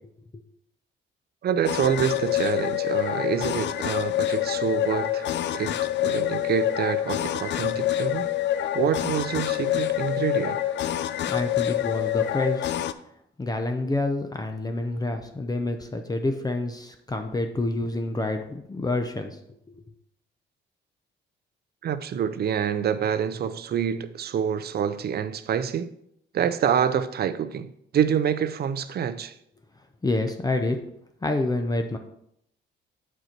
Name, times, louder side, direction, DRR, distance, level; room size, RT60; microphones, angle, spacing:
voice 1, 1.4-8.3 8.7-10.6 21.8-25.9 26.3-29.3, right 8 dB, 55° right, 0.6 m, -27 dB
sound 1, 1.6-12.9, left 12 dB, 65° left, 0.4 m, -26 dB
voice 2, 11.3-12.8 13.4-19.4 30.0-30.8 31.2-32.0, left 2 dB, 20° left, 0.6 m, -28 dB
8.1 x 4.4 x 4.5 m
cardioid pair, 90°, 20 cm